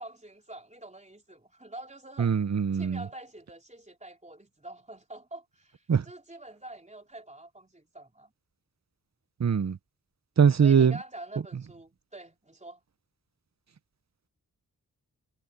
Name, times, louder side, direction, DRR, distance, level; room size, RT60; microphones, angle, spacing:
voice 1, 0.0-2.4 2.7-8.3 10.6-12.8, right 2 dB, 20° right, 3.7 m, -46 dB
voice 2, 2.2-3.0 5.9-6.0 9.4-9.8 10.4-11.0, right 7 dB, 45° right, 0.8 m, -22 dB
wide cardioid pair, 95°, 37 cm